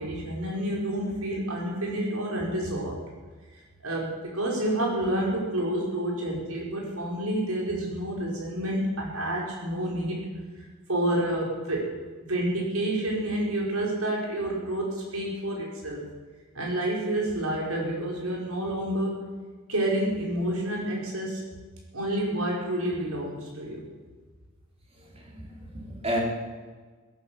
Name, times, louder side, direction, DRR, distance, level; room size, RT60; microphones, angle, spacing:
voice 1, 0.0-3.0 3.8-10.3 10.6-11.9 12.2-16.1 16.5-19.2 19.7-21.5 21.9-23.8, right 1 dB, 80° right, -3 dB, 5.0 m, -29 dB
voice 2, 25.0-26.2, equal, 30° right, -2 dB, 3.8 m, -32 dB
17.0 x 10.5 x 7.2 m, 1.4 s
head